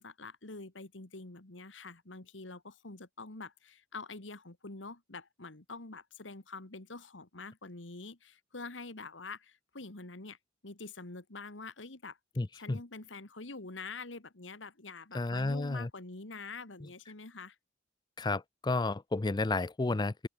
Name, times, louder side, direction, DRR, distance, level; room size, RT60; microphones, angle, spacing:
voice 1, 0.0-10.4 10.6-12.2 12.5-17.6, left 3 dB, 85° left, 2.1 m, -46 dB
voice 2, 12.4-12.8 15.1-15.9 18.2-20.3, left 3 dB, 25° left, 0.5 m, -32 dB
open air
head